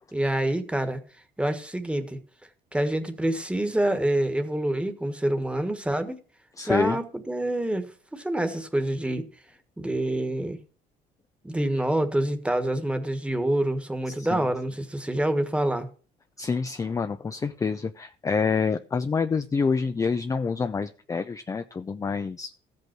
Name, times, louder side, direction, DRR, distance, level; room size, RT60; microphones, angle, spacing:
voice 1, 0.1-1.0 1.4-2.2 2.7-6.2 6.6-9.2 9.8-10.6 11.4-15.9, right 1 dB, 5° right, 1.4 m, -26 dB
voice 2, 6.6-7.0 14.1-14.5 16.4-22.5, left 5 dB, 20° left, 0.4 m, -27 dB
14.0 x 5.4 x 5.9 m
cardioid pair, 110°, 17 cm